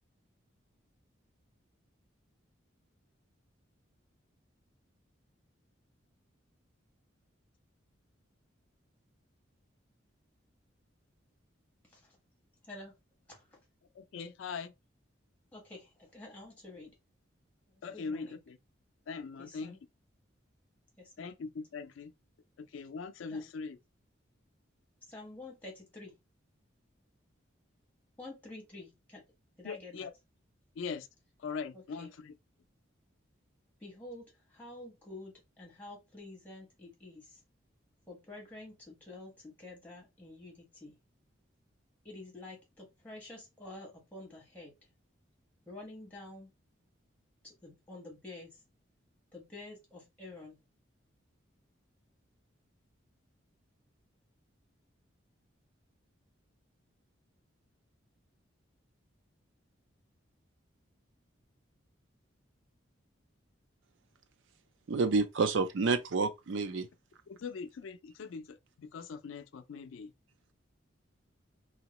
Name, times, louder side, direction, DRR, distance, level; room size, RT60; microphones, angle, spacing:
voice 1, 12.6-12.9 13.3-13.6 15.5-16.9 17.7-18.4 19.4-19.8 21.0-21.3 23.3-23.5 25.1-26.1 28.2-29.2 29.6-30.1 31.7-32.1 33.8-37.4 38.1-41.0 42.0-44.7 45.7-46.5 47.4-48.6 49.3-50.6, left 2 dB, 10° left, 1.3 m, -49 dB
voice 2, 13.9-14.7 17.8-18.6 19.1-19.8 21.2-22.1 22.6-23.8 29.6-30.1 30.8-31.1 31.4-32.3 67.3-70.1, left 5 dB, 80° left, 0.4 m, -41 dB
voice 3, 64.9-66.9, right 4 dB, 70° right, 0.5 m, -29 dB
2.9 x 2.8 x 2.9 m
head